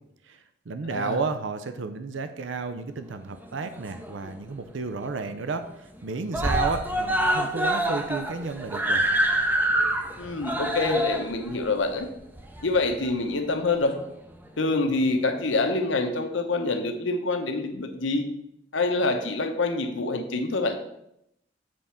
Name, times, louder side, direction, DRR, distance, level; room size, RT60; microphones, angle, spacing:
voice 1, 0.2-9.1, right 4 dB, 70° right, 9 dB, 0.6 m, -32 dB
Screaming, 3.4-4.4 4.7-4.8 5.1-5.2 5.5-6.0 6.3-13.1 14.0-14.1, right 1 dB, 10° right, 0.6 m, -26 dB
voice 2, 10.2-12.1 12.6-14.0 14.6-18.3 18.7-20.8, left 3 dB, 70° left, 6 dB, 0.9 m, -26 dB
7.6 x 3.7 x 5.7 m, 0.78 s
head